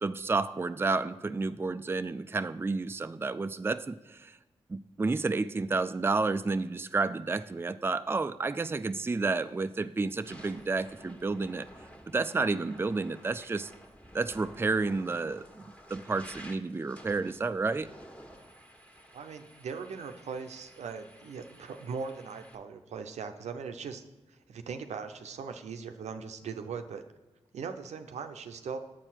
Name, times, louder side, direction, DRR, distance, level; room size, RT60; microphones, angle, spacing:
voice 1, 0.0-4.4 4.7-11.7 12.1-13.7 14.1-17.9, right 3 dB, 20° right, 12 dB, 0.4 m, -31 dB
sound 1, 9.4-9.6 10.1-22.6, equal, 10° left, 1.5 m, -52 dB
voice 2, 19.1-24.0 24.3-27.0 27.5-28.8, right 5 dB, 85° right, 7 dB, 0.6 m, -39 dB
7.6 x 4.5 x 5.8 m, 1.1 s
cardioid pair, 45°, 11 cm